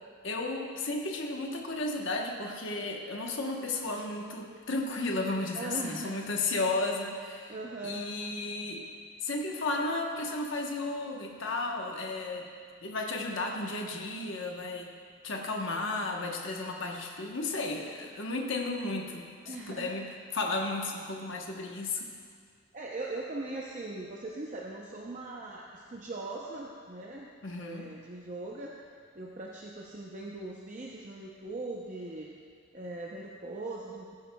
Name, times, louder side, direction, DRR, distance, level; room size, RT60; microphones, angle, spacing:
voice 1, 0.2-7.5 7.8-8.8 9.2-12.5 12.8-14.9 15.2-20.1 20.3-22.1 27.4-27.9, left 2 dB, 55° left, 1 dB, 1.0 m, -33 dB
voice 2, 5.5-6.2 7.5-8.1 16.0-16.4 19.5-20.0 22.7-27.3 27.6-28.7 29.1-32.3 32.7-34.1, right 2 dB, 35° right, -2 dB, 0.6 m, -40 dB
15.5 x 10.5 x 2.3 m, 2.1 s
head